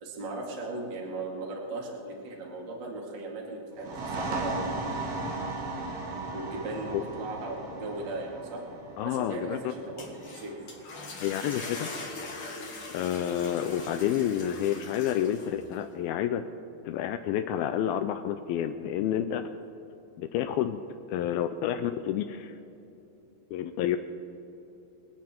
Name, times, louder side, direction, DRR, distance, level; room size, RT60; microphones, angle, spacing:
voice 1, 0.0-4.9 6.3-8.6 9.0-10.5, right 2 dB, 35° right, -2 dB, 2.4 m, -37 dB
sound 1, 3.7-11.1, right 2 dB, 85° right, 4.1 m, -36 dB
voice 2, 9.0-9.6 11.2-11.9 12.5-16.4 16.9-19.4 20.2-20.8 21.1-22.5 23.5-24.0, left 10 dB, 80° left, 9 dB, 2.2 m, -29 dB
sound 2, 9.8-15.8, left 3 dB, 40° left, 2.2 m, -41 dB
25.0 x 9.3 x 4.5 m, 2.9 s
omnidirectional pair, 4.7 m